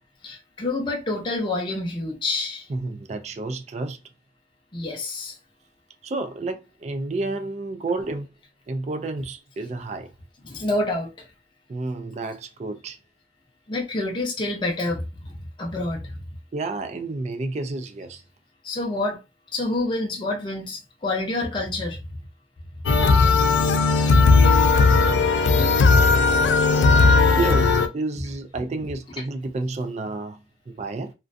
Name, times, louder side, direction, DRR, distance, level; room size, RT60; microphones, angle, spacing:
voice 1, 0.2-2.7 4.7-5.4 10.5-11.1 13.7-15.3 15.6-16.1 18.6-19.2 19.5-22.0 25.5-25.7, left 2 dB, 25° left, 0.6 m, -27 dB
voice 2, 2.7-4.0 6.0-8.3 8.7-10.1 11.7-13.0 16.5-18.2 27.3-30.4 30.7-31.1, right 2 dB, 40° right, 0.3 m, -30 dB
sound 1, 22.9-27.9, left 4 dB, 85° left, 0.3 m, -17 dB
2.4 x 2.2 x 2.5 m
head